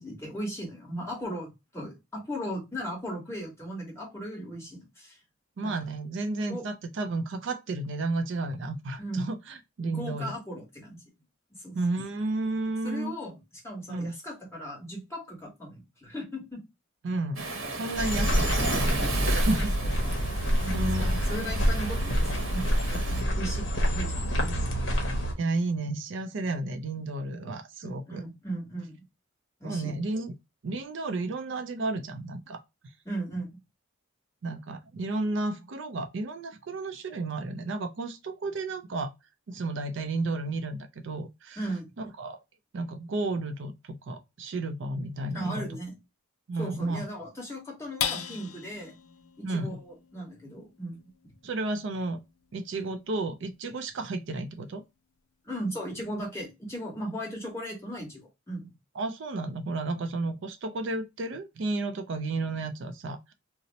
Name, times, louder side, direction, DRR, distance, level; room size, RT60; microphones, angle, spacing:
voice 1, 0.0-5.2 5.6-5.7 6.5-6.6 9.0-9.3 9.8-11.0 11.5-11.8 12.8-16.6 19.2-19.7 20.0-20.2 20.5-24.7 27.8-29.0 29.6-29.9 33.0-33.6 41.6-41.9 45.3-45.9 46.6-48.9 49.4-51.0 55.4-58.2 58.5-58.7, right 1 dB, 15° left, 1.2 m, -37 dB
voice 2, 5.6-10.3 11.7-13.1 13.9-14.1 17.0-17.5 17.7-19.7 20.7-21.5 25.4-28.2 29.6-30.3 30.6-32.6 34.4-39.1 39.5-41.6 42.0-42.4 42.7-45.7 46.5-47.0 49.4-49.8 51.4-52.2 52.5-54.8 59.0-63.3, right 2 dB, 60° right, 0.4 m, -32 dB
Waves surf, 17.4-23.2, right 2 dB, 80° right, 0.9 m, -34 dB
sound 1, 18.0-25.3, equal, 60° left, 0.8 m, -27 dB
sound 2, 48.0-54.7 55.2-55.3 55.7-56.2, left 8 dB, 85° left, 0.4 m, -40 dB
2.7 x 2.0 x 3.9 m
head